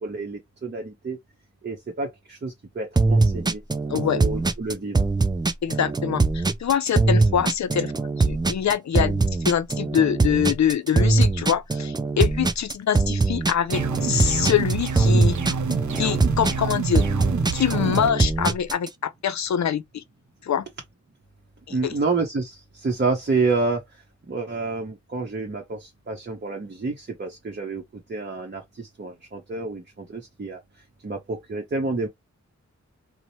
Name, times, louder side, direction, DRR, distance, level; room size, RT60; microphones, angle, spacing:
voice 1, 0.0-1.2 1.6-3.6 3.9-5.0 21.7-23.8 24.3-27.8 28.1-30.6 31.0-32.1, right 3 dB, 35° right, 0.7 m, -29 dB
sound 1, 3.0-18.9, right 3 dB, 15° right, 0.4 m, -22 dB
voice 2, 5.6-7.9 8.2-15.4 16.0-17.1 17.5-20.0 20.4-20.7 21.8-21.9, left 9 dB, 65° left, 0.5 m, -24 dB
sound 2, 13.7-18.1, right 5 dB, 70° right, 0.6 m, -27 dB
2.9 x 2.0 x 2.6 m
cardioid pair, 50°, 31 cm